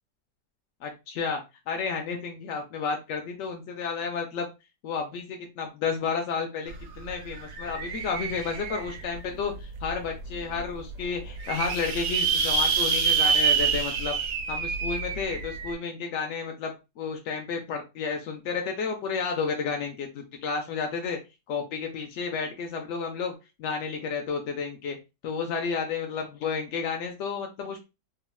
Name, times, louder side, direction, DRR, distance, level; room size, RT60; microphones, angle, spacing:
voice 1, 0.8-1.4 1.7-4.5 4.8-14.2 14.5-21.2 21.5-23.3 23.6-25.0 25.2-27.8, left 5 dB, 75° left, 3 dB, 0.6 m, -31 dB
sound 1, 6.7-6.8 7.1-9.2 9.8-9.9 10.2-10.3 10.5-10.6 11.2-15.7, right 5 dB, 90° right, 1.2 m, -27 dB
3.7 x 2.1 x 2.2 m, 0.26 s
omnidirectional pair, 1.7 m